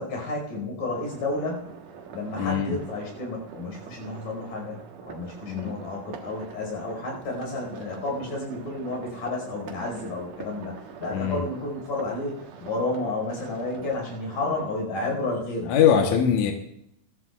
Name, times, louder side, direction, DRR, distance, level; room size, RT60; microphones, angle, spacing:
voice 1, 0.0-1.7 2.1-15.8, left 2 dB, 90° left, 0 dB, 6.6 m, -31 dB
sound 1, 0.9-14.8, right 6 dB, 80° right, 2.8 m, -44 dB
voice 2, 2.4-2.8 5.5-5.7 11.1-11.4 15.7-16.5, left 8 dB, 70° left, 2 dB, 2.4 m, -22 dB
21.5 x 14.0 x 2.4 m, 0.75 s
omnidirectional pair, 3.7 m